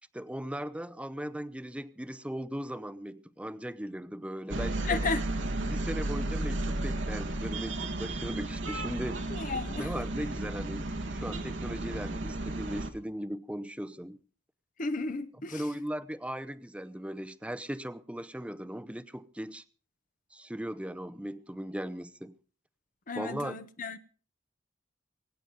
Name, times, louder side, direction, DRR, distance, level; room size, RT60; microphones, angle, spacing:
voice 1, 0.1-5.1 5.6-9.2 9.7-14.2 15.5-19.6 20.3-22.3 23.1-23.6, equal, 5° right, 0.7 m, -38 dB
sound 1, 4.5-12.9, right 2 dB, 85° right, 1.7 m, -33 dB
voice 2, 4.8-5.2 9.3-9.9 14.8-15.6 23.1-24.0, left 3 dB, 45° left, 0.9 m, -33 dB
23.5 x 9.2 x 5.3 m
head